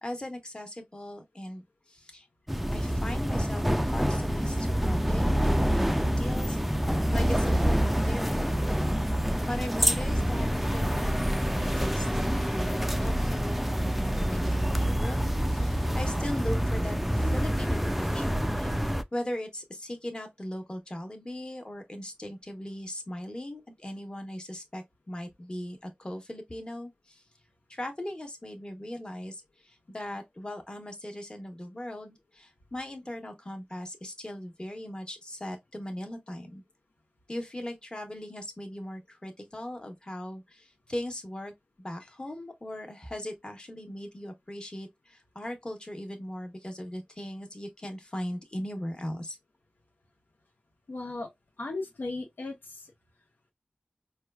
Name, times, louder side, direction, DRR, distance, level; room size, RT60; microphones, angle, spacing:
voice 1, 0.0-2.3 2.7-8.7 9.4-15.2 15.5-27.2 27.7-36.6 37.3-41.5 41.8-49.4, left 1 dB, 25° left, 1.0 m, -39 dB
sound 1, 2.5-19.0, equal, 5° right, 0.3 m, -27 dB
voice 2, 50.9-51.3 51.6-52.9, left 2 dB, 85° left, 0.8 m, -36 dB
4.5 x 2.3 x 2.3 m
wide cardioid pair, 60°, 3 cm